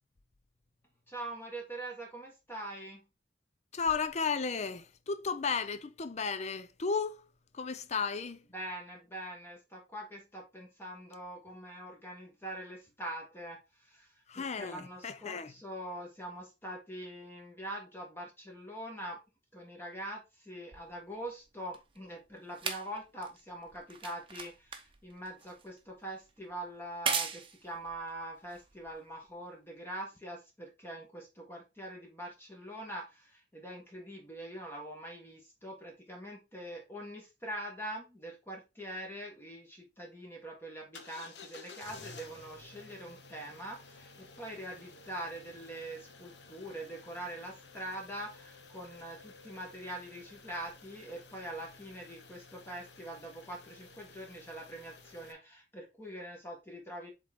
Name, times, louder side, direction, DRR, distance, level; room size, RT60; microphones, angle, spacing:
voice 1, 1.1-3.0 8.5-19.2 19.5-57.1, right 1 dB, 15° left, 1.5 m, -43 dB
voice 2, 3.7-7.3 7.5-8.4 14.3-15.5, left 5 dB, 40° left, 0.6 m, -34 dB
sound 1, 20.7-29.3 30.2-30.3, right 6 dB, 30° right, 0.8 m, -40 dB
sound 2, 40.9-55.3, left 4 dB, 70° left, 1.1 m, -53 dB
7.6 x 3.7 x 3.6 m
head